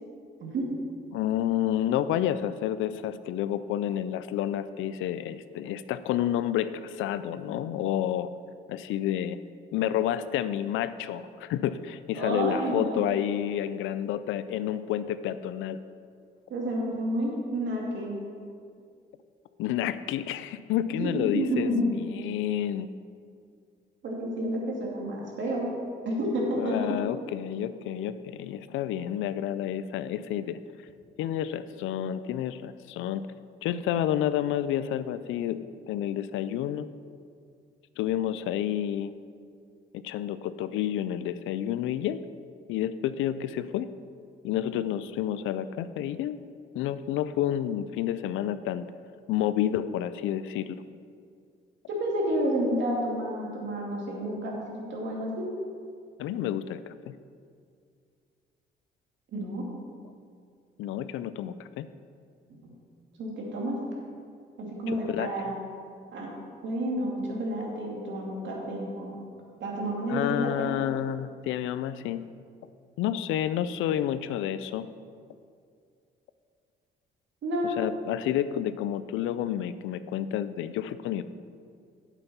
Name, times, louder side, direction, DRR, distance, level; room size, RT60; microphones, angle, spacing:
voice 1, 0.4-0.7 12.1-13.1 16.5-18.2 21.0-21.9 24.0-25.7 26.0-27.0 51.9-55.5 59.3-59.7 62.5-62.7 63.2-63.8 64.6-65.6 66.1-66.3 66.6-69.1 69.6-70.7 77.4-77.8, right 1 dB, 70° right, -2 dB, 2.5 m, -30 dB
voice 2, 1.1-8.3 8.7-9.4 9.7-15.8 19.6-21.7 22.0-22.9 26.6-30.6 31.2-33.2 33.6-36.9 38.0-39.1 40.0-42.2 42.7-43.9 44.4-46.4 46.7-48.8 49.3-50.8 56.2-56.8 57.1-57.2 60.8-61.9 64.9-65.3 70.1-72.2 73.0-74.9 77.6-81.2, left 11 dB, 90° left, 13 dB, 0.4 m, -29 dB
8.3 x 7.9 x 5.5 m, 2.3 s
cardioid pair, 90°, 20 cm